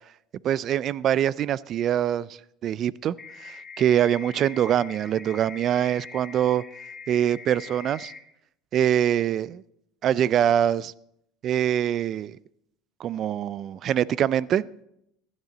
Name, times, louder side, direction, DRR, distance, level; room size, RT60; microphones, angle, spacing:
voice 1, 0.4-2.3 2.6-3.1 3.4-6.6 7.1-8.1 8.7-9.6 10.0-10.9 11.4-12.4 13.0-14.6, right 10 dB, 45° right, 0.4 m, -24 dB
sound 1, 3.2-8.2, left 5 dB, 20° left, 1.8 m, -43 dB
15.5 x 11.0 x 4.0 m
supercardioid pair, 125°, 0 cm